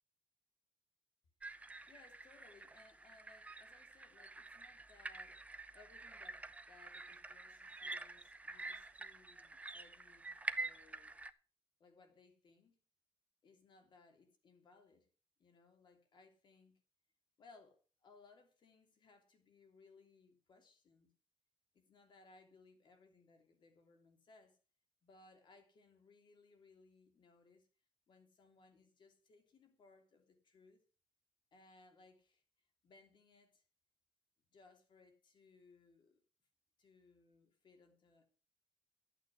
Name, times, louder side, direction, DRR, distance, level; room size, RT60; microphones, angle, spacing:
sound 1, 1.4-11.3, right 2 dB, 15° right, 0.7 m, -48 dB
voice 1, 1.9-5.4 5.7-11.2 11.8-12.8 13.4-15.1 15.4-16.8 17.4-21.1 21.7-24.6 25.0-27.7 28.1-30.8 31.5-33.6 34.5-36.2 36.8-38.3, left 3 dB, 45° left, 3.2 m, -65 dB
12.5 x 9.2 x 5.2 m
cardioid pair, 135°, 11 cm